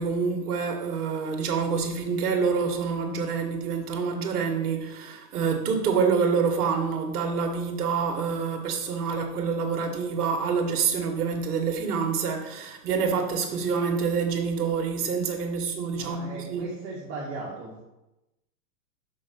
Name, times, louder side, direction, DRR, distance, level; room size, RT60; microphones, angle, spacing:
voice 1, 0.0-16.7, right 5 dB, 80° right, 3 dB, 1.7 m, -27 dB
voice 2, 15.9-17.8, right 2 dB, 30° right, -6 dB, 1.8 m, -37 dB
6.3 x 4.7 x 5.8 m, 0.97 s
supercardioid pair, 145°, 46 cm